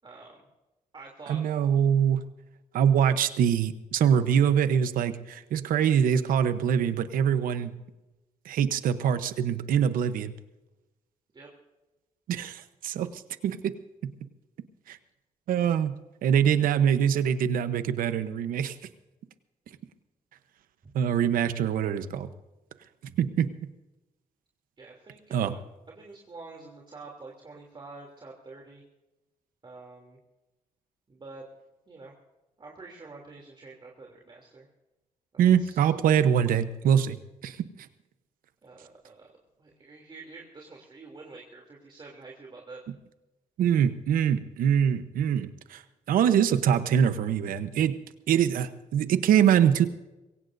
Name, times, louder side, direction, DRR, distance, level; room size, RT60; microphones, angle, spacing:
voice 1, 0.0-0.4 0.9-1.4 11.3-11.5 24.8-25.6 25.9-28.8 29.6-30.2 31.1-31.5 31.9-32.1 32.6-34.7 35.3-35.9 38.6-39.3 39.6-42.8, right 3 dB, 35° right, -1 dB, 3.1 m, -47 dB
voice 2, 1.3-2.2 2.7-7.7 8.4-10.3 12.3-13.7 14.9-15.0 15.5-15.9 16.2-18.7 20.9-22.3 23.2-23.5 25.3-25.5 35.4-37.2 37.4-37.6 43.6-45.8 46.1-47.9 48.3-49.9, right 8 dB, 85° right, 11 dB, 1.0 m, -24 dB
22.5 x 17.0 x 2.7 m, 1.0 s
cardioid pair, 80°, 14 cm